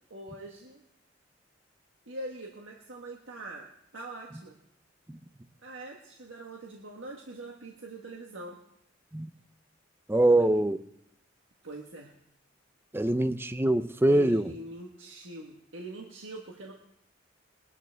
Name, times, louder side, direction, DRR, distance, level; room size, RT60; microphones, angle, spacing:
voice 1, 0.1-0.8 2.1-4.6 5.6-8.6 10.3-10.6 11.6-12.1 14.1-16.7, right 1 dB, 90° right, 0 dB, 1.5 m, -43 dB
voice 2, 10.1-10.8 12.9-14.4, right 1 dB, 10° right, 11 dB, 0.6 m, -23 dB
22.0 x 12.0 x 3.5 m, 0.75 s
head